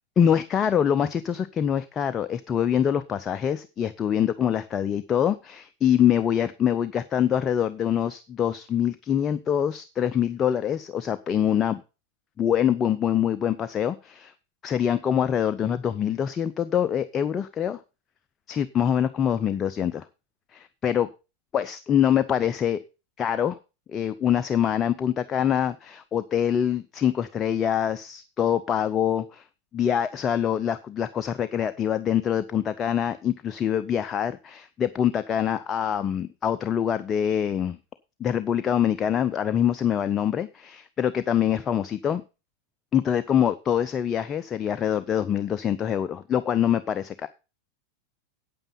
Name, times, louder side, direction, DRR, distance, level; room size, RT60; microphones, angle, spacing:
voice 1, 0.2-11.8 12.4-14.3 14.6-17.8 18.5-19.9 20.5-21.1 21.5-22.8 23.2-23.6 23.9-29.4 29.7-37.8 38.2-42.2 42.9-47.3, left 9 dB, 25° left, 11 dB, 0.6 m, -24 dB
8.9 x 8.6 x 5.5 m, 0.30 s
figure-of-eight pair, 90°, 0 cm